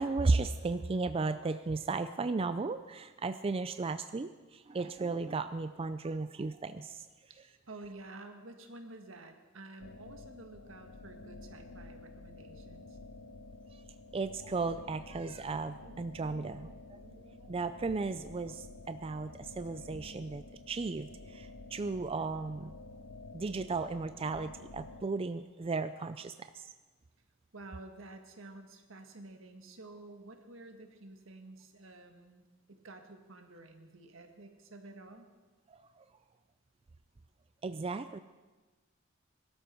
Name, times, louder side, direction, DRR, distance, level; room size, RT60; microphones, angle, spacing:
voice 1, 0.0-7.1 14.1-22.7 23.3-26.7 37.6-38.2, right 3 dB, 30° right, 11 dB, 0.4 m, -35 dB
voice 2, 7.7-13.0 27.5-35.3, right 2 dB, 80° right, 5 dB, 1.7 m, -51 dB
sound 1, 9.8-25.0, left 2 dB, 75° left, 0.7 m, -51 dB
22.0 x 12.5 x 4.5 m, 1.3 s
head